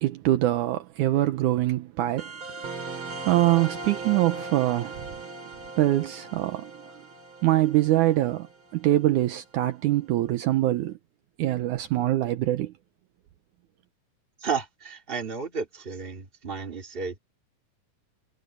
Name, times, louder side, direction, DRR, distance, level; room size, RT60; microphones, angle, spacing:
voice 1, 0.0-2.3 2.6-5.2 5.8-6.9 7.4-8.5 8.7-11.0 11.4-12.7, right 15 dB, 75° right, 2.1 m, -24 dB
sound 1, 2.2-9.3, right 3 dB, 35° right, 5.4 m, -39 dB
voice 2, 14.4-17.2, right 5 dB, 20° right, 2.2 m, -32 dB
omnidirectional pair, 3.8 m